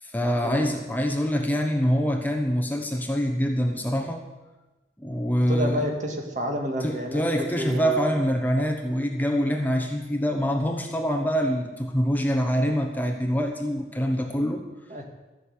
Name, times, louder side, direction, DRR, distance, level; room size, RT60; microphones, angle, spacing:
voice 1, 0.0-4.2 5.0-5.8 6.8-14.6, equal, 10° left, 3 dB, 1.0 m, -25 dB
voice 2, 5.5-8.1 14.9-15.0, equal, 45° right, 3 dB, 2.2 m, -30 dB
14.5 x 6.6 x 9.7 m, 1.1 s
head